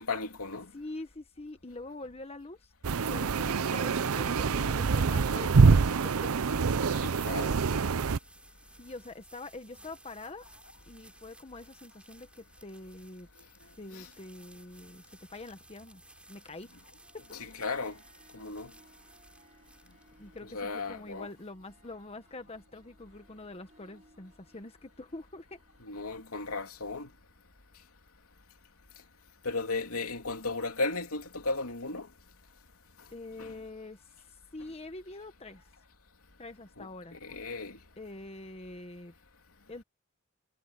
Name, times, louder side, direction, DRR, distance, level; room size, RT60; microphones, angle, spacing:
voice 1, 0.0-0.7 7.0-7.6 13.9-14.1 17.4-18.0 18.3-18.7 20.5-21.3 25.8-27.1 29.4-32.1 33.4-33.5 36.8-37.8, left 3 dB, 80° left, 3.1 m, -35 dB
voice 2, 0.7-2.7 3.0-5.8 6.2-6.3 8.8-10.5 10.9-13.3 13.8-16.0 16.3-16.7 17.1-17.2 20.2-25.6 33.1-35.7 36.4-37.2 38.0-39.1 39.7-39.8, left 2 dB, 30° left, 1.2 m, -45 dB
sound 1, 2.8-8.2, right 4 dB, 80° right, 0.6 m, -25 dB
sound 2, 8.0-21.7, right 1 dB, 5° right, 4.5 m, -59 dB
Harp, 16.5-27.7, right 2 dB, 35° right, 7.4 m, -65 dB
head